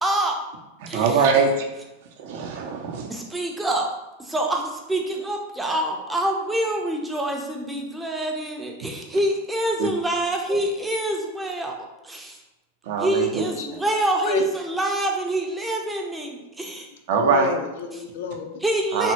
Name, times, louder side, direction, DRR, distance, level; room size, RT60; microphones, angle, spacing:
voice 1, 0.0-0.4 0.9-1.3 3.1-3.9 4.2-11.7 12.0-12.4 13.0-16.9 18.6-19.1, right 1 dB, 10° right, 1 dB, 0.4 m, -26 dB
voice 2, 0.9-1.6 2.2-3.1 9.8-9.9 10.5-10.6 12.9-13.4 17.1-17.5 18.9-19.1, right 5 dB, 65° right, 2 dB, 0.5 m, -22 dB
voice 3, 13.9-14.4 17.1-18.6, left 5 dB, 70° left, 6 dB, 0.4 m, -29 dB
3.4 x 2.0 x 2.8 m, 1.0 s
supercardioid pair, 130°, 0 cm